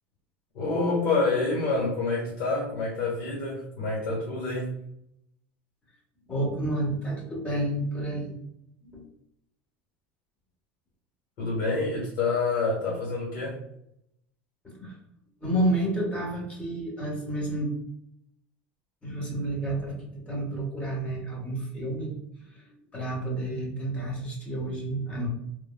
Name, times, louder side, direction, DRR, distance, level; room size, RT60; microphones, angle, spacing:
voice 1, 0.5-4.7 11.4-13.6, left 3 dB, 55° left, -5 dB, 1.4 m, -27 dB
voice 2, 6.3-8.4 8.8-9.0 14.6-14.9 15.4-17.7 19.0-22.1 22.5-25.3, right 1 dB, 20° left, -2 dB, 1.3 m, -30 dB
3.3 x 2.2 x 2.2 m, 0.76 s
supercardioid pair, 105°, 6 cm